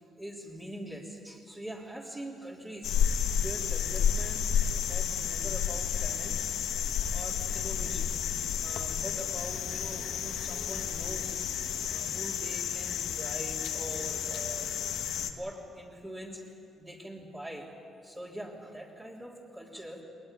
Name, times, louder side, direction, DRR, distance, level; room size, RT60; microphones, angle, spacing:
voice 1, 0.2-2.9 3.4-6.4 7.1-8.1 8.6-11.3 11.8-14.7 15.2-16.4 16.8-17.7 18.0-20.0, equal, 20° right, -5 dB, 3.4 m, -43 dB
sound 1, 2.8-15.3, left 8 dB, 85° left, 1.5 m, -31 dB
21.5 x 20.0 x 8.9 m, 2.8 s
cardioid pair, 90°, 0 cm